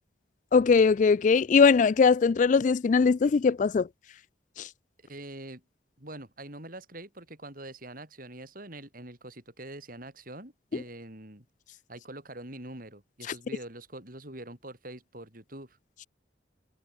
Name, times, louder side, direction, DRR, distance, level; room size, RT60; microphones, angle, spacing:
voice 1, 0.5-3.9 4.6-4.7 10.7-10.8, left 5 dB, 45° left, 0.3 m, -21 dB
voice 2, 5.0-5.6 6.0-11.5 11.9-15.8, right 1 dB, 50° right, 7.6 m, -44 dB
head